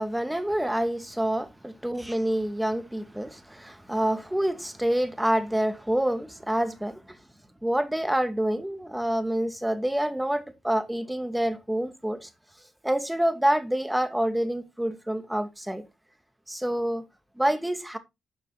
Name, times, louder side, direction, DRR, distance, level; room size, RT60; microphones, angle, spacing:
voice 1, 0.0-7.2 7.6-12.3 12.8-15.8 16.5-17.0 17.4-18.0, right 1 dB, 5° right, 2.4 m, -27 dB
12.0 x 6.5 x 4.2 m
hypercardioid pair, 45°, 0 cm